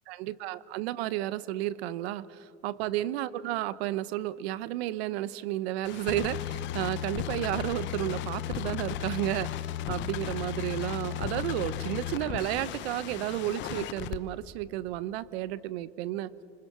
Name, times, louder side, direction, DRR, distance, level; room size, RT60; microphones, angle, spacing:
voice 1, 0.1-9.6 9.9-16.3, right 14 dB, 70° right, 18 dB, 0.9 m, -32 dB
sound 1, 5.8-14.2, left 12 dB, 35° left, 0.8 m, -35 dB
25.5 x 25.0 x 6.0 m, 2.6 s
supercardioid pair, 155°, 32 cm